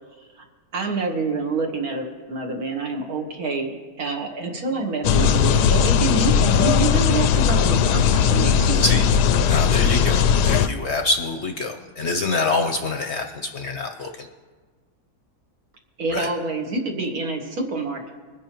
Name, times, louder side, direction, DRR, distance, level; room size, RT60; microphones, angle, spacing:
voice 1, 0.7-8.9 16.0-18.1, right 3 dB, 65° right, 2 dB, 1.8 m, -27 dB
sound 1, 5.0-10.7, left 7 dB, 85° left, 1.2 m, -18 dB
voice 2, 8.7-9.0 9.4-14.3 16.1-16.3, left 3 dB, 55° left, 5 dB, 0.8 m, -25 dB
22.0 x 10.5 x 3.0 m, 1.4 s
omnidirectional pair, 1.7 m